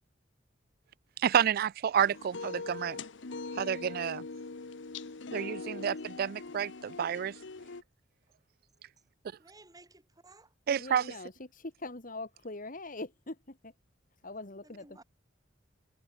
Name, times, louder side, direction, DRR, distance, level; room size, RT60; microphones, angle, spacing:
voice 1, 1.2-3.0 3.5-4.3 5.3-7.4 10.7-11.0, right 8 dB, 50° right, 0.3 m, -29 dB
sound 1, 2.0-7.8, left 3 dB, 75° left, 1.0 m, -42 dB
voice 2, 9.4-10.5 14.6-15.0, right 2 dB, 20° right, 3.8 m, -56 dB
voice 3, 10.8-13.7 14.2-15.0, left 2 dB, 45° left, 2.2 m, -42 dB
open air
head